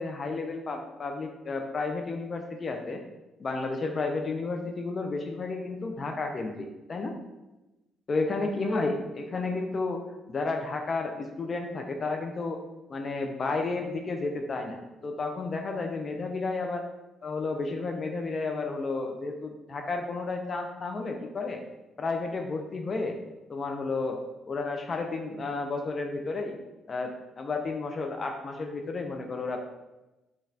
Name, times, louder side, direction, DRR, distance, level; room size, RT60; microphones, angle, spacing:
voice 1, 0.0-3.0 3.4-7.1 8.1-10.0 10.3-12.6 12.9-16.8 17.2-21.6 22.0-23.2 23.5-24.2 24.5-26.5 26.9-29.6, left 3 dB, 40° left, 4 dB, 0.3 m, -32 dB
3.9 x 2.3 x 2.6 m, 1.0 s
cardioid pair, 90°, 0 cm